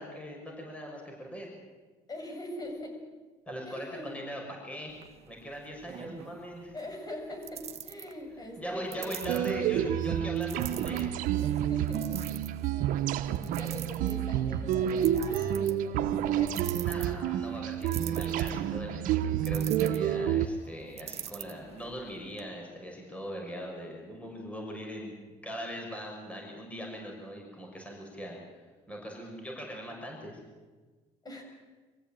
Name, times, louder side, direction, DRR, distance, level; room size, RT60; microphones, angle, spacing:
voice 1, 0.0-1.5 3.5-4.9 5.2-6.7 8.4-11.1 16.8-28.4 28.9-30.4, equal, 10° left, 0 dB, 6.8 m, -40 dB
voice 2, 2.1-3.0 3.6-4.3 6.7-9.2 9.4-10.2 11.4-16.7 17.7-18.2 31.2-31.4, left 1 dB, 30° left, 2 dB, 7.5 m, -43 dB
sound 1, 4.9-22.4, right 9 dB, 50° right, 1.5 m, -46 dB
sound 2, 9.2-20.5, right 10 dB, 80° right, 1.1 m, -29 dB
24.5 x 15.5 x 9.0 m, 1.3 s
cardioid pair, 95°, 14 cm